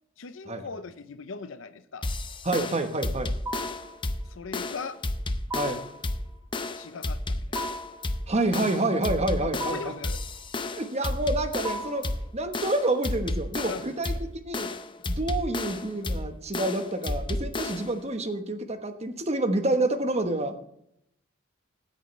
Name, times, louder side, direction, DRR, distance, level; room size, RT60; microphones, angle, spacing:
voice 1, 0.2-2.1 4.3-5.0 6.7-7.6 9.4-10.2 13.7-13.8, left 4 dB, 70° left, 12 dB, 0.7 m, -39 dB
sound 1, 2.0-18.0, left 2 dB, 25° left, 0.6 m, -32 dB
voice 2, 2.4-3.3 5.5-5.8 8.3-9.9 10.7-12.0 12.3-14.7 15.1-20.6, right 2 dB, 30° right, 7 dB, 1.1 m, -28 dB
sound 2, 3.5-3.9 5.5-6.0 7.6-8.0 9.6-10.1 11.6-12.1, right 1 dB, 15° right, 1.4 m, -36 dB
15.5 x 8.8 x 3.2 m, 0.74 s
head